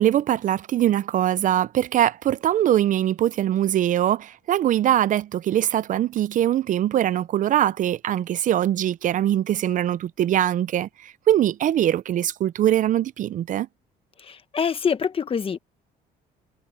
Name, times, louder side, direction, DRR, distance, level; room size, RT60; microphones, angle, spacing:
voice 1, 0.0-13.7, right 11 dB, 50° right, 0.5 m, -22 dB
voice 2, 14.3-15.6, left 6 dB, 35° left, 1.3 m, -25 dB
cardioid pair, 110°, 17 cm